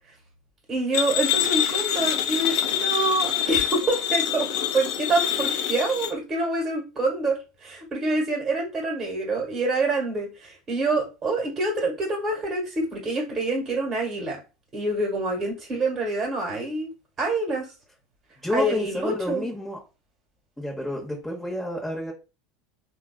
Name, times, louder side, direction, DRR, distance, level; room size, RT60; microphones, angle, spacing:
voice 1, 0.7-4.5 4.7-14.4 14.7-16.9 17.2-17.7 18.5-19.5, right 2 dB, 30° right, 1.4 m, -26 dB
sound 1, 0.9-6.1, left 11 dB, 65° left, 0.6 m, -25 dB
voice 2, 18.4-19.8 20.6-22.1, left 1 dB, 5° left, 0.9 m, -30 dB
3.3 x 2.4 x 2.3 m
hypercardioid pair, 90°, 0 cm